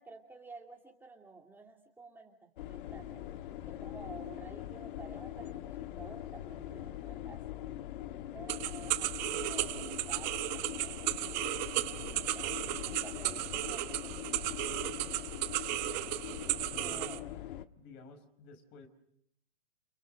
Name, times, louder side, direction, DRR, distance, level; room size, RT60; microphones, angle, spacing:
voice 1, 0.0-3.2 3.6-7.4 8.3-14.2 16.8-17.4, right 3 dB, 5° right, 1 dB, 2.5 m, -52 dB
sound 1, 2.6-17.7, left 12 dB, 55° left, 1.5 m, -42 dB
sound 2, 8.5-17.2, right 18 dB, 45° right, 1.4 m, -35 dB
voice 2, 16.7-17.1 17.8-18.9, left 4 dB, 35° left, 7 dB, 5.3 m, -53 dB
30.0 x 28.5 x 6.6 m, 0.71 s
hypercardioid pair, 130°, 31 cm